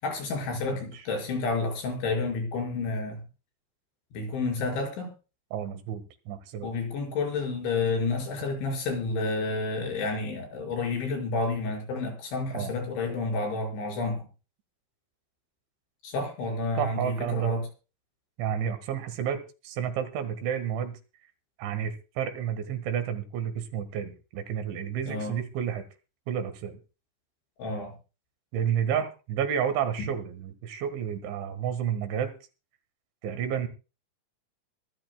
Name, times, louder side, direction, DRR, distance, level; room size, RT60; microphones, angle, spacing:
voice 1, 0.0-3.2 4.1-5.1 6.6-14.2 16.0-17.7 25.1-25.4 27.6-27.9, left 3 dB, 80° left, 1 dB, 7.7 m, -30 dB
voice 2, 5.5-6.7 12.5-12.7 16.8-17.5 18.4-21.0 21.6-25.8 26.3-26.8 28.5-32.3 33.2-33.7, right 8 dB, 80° right, 10 dB, 4.0 m, -31 dB
25.0 x 13.0 x 2.3 m, 0.33 s
omnidirectional pair, 5.3 m